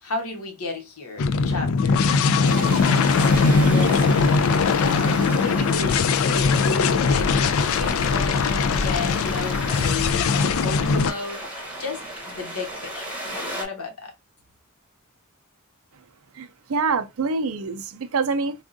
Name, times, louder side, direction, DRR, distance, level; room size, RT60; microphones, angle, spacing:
voice 1, 0.0-2.8 3.0-7.3 7.7-10.3 10.6-11.4 11.8-14.1, left 4 dB, 80° left, 1.1 m, -34 dB
sound 1, 1.2-11.1, left 4 dB, 65° left, 0.3 m, -20 dB
sound 2, 2.4-13.6, right 1 dB, 5° right, 1.0 m, -35 dB
voice 2, 16.4-18.5, right 4 dB, 65° right, 0.5 m, -25 dB
3.6 x 2.4 x 2.5 m
head